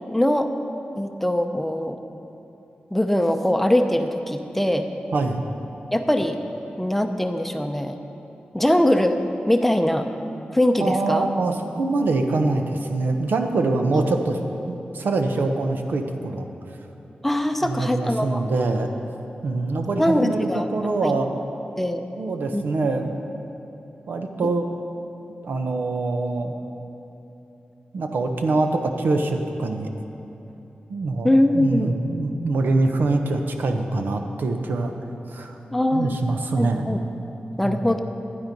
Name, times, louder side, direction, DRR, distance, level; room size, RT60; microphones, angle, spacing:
voice 1, 0.1-0.5 1.0-2.0 2.9-4.9 5.9-6.4 6.8-8.0 8.5-9.2 9.5-10.1 10.5-11.3 13.9-14.0 17.2-18.4 20.0-20.7 21.0-21.1 21.8-22.0 22.5-22.6 31.2-31.9 35.7-36.2 36.6-37.0 37.6-38.0, left 1 dB, 5° left, 6 dB, 0.6 m, -21 dB
voice 2, 5.1-5.4 10.8-14.4 14.7-16.5 17.6-18.9 19.4-21.3 22.2-23.1 24.1-24.7 25.4-26.5 27.9-29.9 30.9-31.3 31.5-34.9 35.3-35.6 35.9-37.0 37.6-37.8, right 3 dB, 85° right, 5 dB, 0.8 m, -24 dB
12.0 x 9.7 x 5.3 m, 2.9 s
wide cardioid pair, 105°, 3 cm